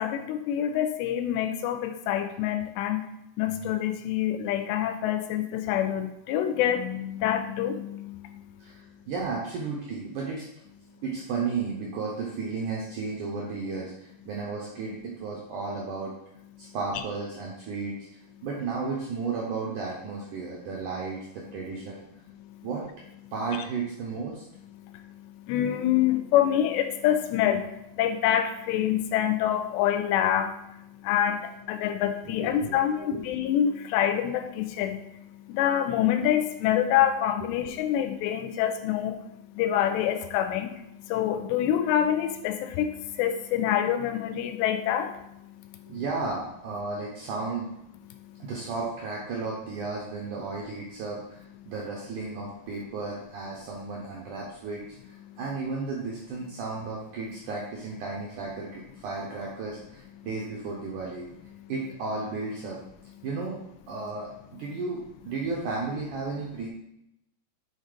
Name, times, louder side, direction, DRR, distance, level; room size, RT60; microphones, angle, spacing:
voice 1, 0.0-3.0 3.4-9.0 10.9-11.0 22.4-22.7 24.8-46.0 48.1-48.5 51.6-51.7 55.3-55.4 60.2-60.3 61.5-61.7, left 10 dB, 90° left, 8 dB, 2.9 m, -27 dB
voice 2, 8.6-10.5 11.0-16.1 16.6-22.1 22.6-22.8 23.3-24.4 32.4-33.2 37.4-37.5 45.9-47.7 48.4-61.3 61.7-62.8 63.2-63.6 63.9-66.7, right 4 dB, 80° right, -3 dB, 1.8 m, -34 dB
7.7 x 4.0 x 5.0 m, 0.84 s
omnidirectional pair, 4.8 m